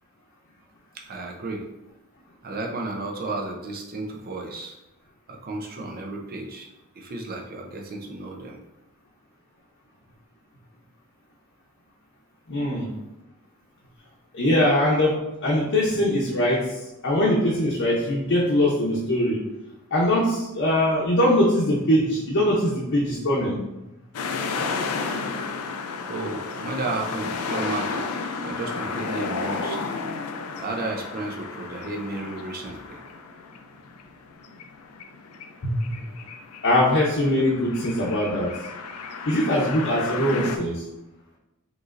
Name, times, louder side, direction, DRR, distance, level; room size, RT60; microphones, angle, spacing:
voice 1, 0.9-1.6 2.4-4.8 5.3-6.7 6.9-8.6 26.1-28.2 28.4-29.8 30.6-33.0, right 2 dB, 45° right, 1 dB, 0.6 m, -33 dB
voice 2, 12.5-12.9 14.3-16.7 17.0-19.4 19.9-23.6 35.6-36.0 36.6-38.5 39.3-40.8, left 1 dB, 55° left, -6 dB, 0.7 m, -22 dB
sound 1, 24.1-40.6, left 4 dB, 85° left, 0.4 m, -33 dB
5.1 x 3.1 x 2.5 m, 0.95 s
head